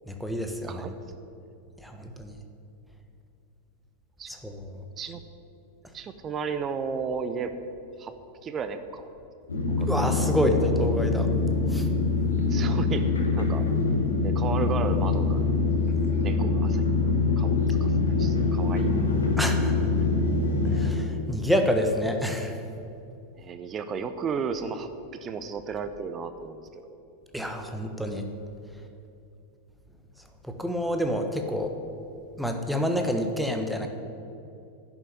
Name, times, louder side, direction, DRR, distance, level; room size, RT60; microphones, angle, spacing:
voice 1, 0.1-0.8 1.8-2.4 4.3-4.7 9.9-11.3 11.7-11.9 19.4-19.9 20.7-22.6 27.3-28.2 30.5-31.7 32.4-33.9, equal, ahead, 4 dB, 1.3 m, -28 dB
voice 2, 0.7-1.0 4.2-4.3 5.0-5.2 5.9-7.6 8.0-8.2 8.4-9.1 9.7-9.9 12.5-13.1 13.4-13.7 14.2-15.5 16.2-16.9 17.4-19.0 23.4-24.9 25.2-27.0, right 6 dB, 25° right, 11 dB, 0.8 m, -34 dB
sound 1, 9.5-20.9, left 3 dB, 75° left, 2.5 m, -24 dB
11.0 x 7.6 x 9.7 m, 2.7 s
figure-of-eight pair, 90°, 0 cm